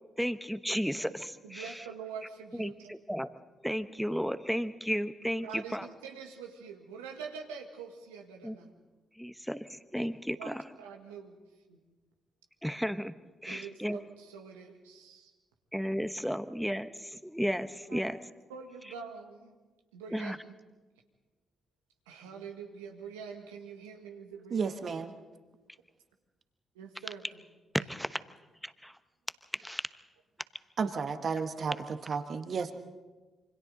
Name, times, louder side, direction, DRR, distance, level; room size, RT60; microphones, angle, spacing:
voice 1, 0.2-1.8 2.5-3.3 3.6-5.9 8.4-8.6 9.2-10.6 12.6-13.1 13.4-14.0 15.7-18.2 20.1-20.4 27.7-28.2 28.6-28.9 29.6-29.9, equal, ahead, 11 dB, 1.1 m, -33 dB
voice 2, 1.4-2.9 5.4-8.7 10.4-11.4 11.7-11.8 13.5-15.3 17.9-18.1 18.5-19.6 19.9-20.5 22.1-24.9 26.8-27.4 27.8-27.9, right 6 dB, 85° right, 3 dB, 1.7 m, -45 dB
voice 3, 24.5-25.1 30.8-32.7, right 5 dB, 55° right, 8 dB, 1.5 m, -32 dB
27.5 x 25.0 x 4.0 m, 1.2 s
hypercardioid pair, 40°, 0 cm